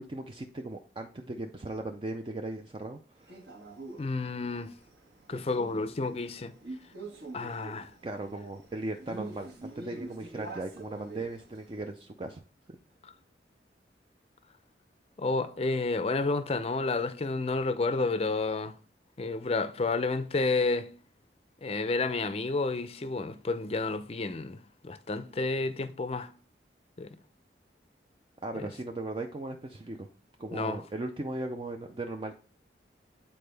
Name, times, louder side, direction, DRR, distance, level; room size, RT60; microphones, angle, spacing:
voice 1, 0.0-3.4 8.0-12.4 28.4-30.1 30.4-32.3, right 2 dB, 30° right, 0.4 m, -38 dB
Male speech man speaking, 3.3-11.8, right 2 dB, 65° right, 1.4 m, -45 dB
voice 2, 4.0-4.7 5.3-6.5 7.3-7.9 13.0-13.1 15.2-18.8 19.2-20.9 21.6-26.3 27.0-27.1 28.5-28.7 30.5-30.8, left 3 dB, 35° left, 0.5 m, -30 dB
8.6 x 4.3 x 3.3 m
head